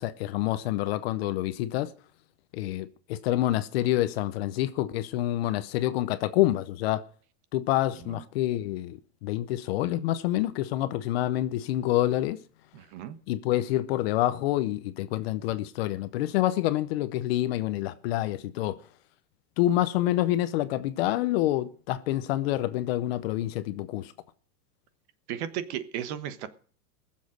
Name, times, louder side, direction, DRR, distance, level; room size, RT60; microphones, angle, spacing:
voice 1, 0.0-1.9 2.5-7.0 7.5-12.4 13.3-18.8 19.6-24.1, left 14 dB, 40° left, 0.7 m, -27 dB
voice 2, 12.7-13.2 25.3-26.5, right 10 dB, 40° right, 1.3 m, -35 dB
20.0 x 7.5 x 6.4 m
supercardioid pair, 165°, 48 cm